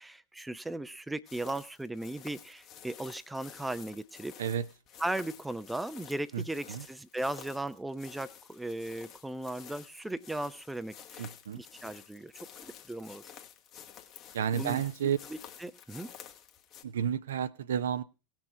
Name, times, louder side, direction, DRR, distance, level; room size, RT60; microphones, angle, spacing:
voice 1, 0.0-4.3 5.0-13.2 14.5-16.1, right 1 dB, 5° right, 0.6 m, -37 dB
sound 1, 1.3-16.8, left 9 dB, 35° left, 1.3 m, -51 dB
voice 2, 6.3-6.8 11.2-11.6 14.3-15.2 16.8-18.0, right 8 dB, 60° right, 0.6 m, -31 dB
18.0 x 6.1 x 4.7 m
figure-of-eight pair, 90°, 0 cm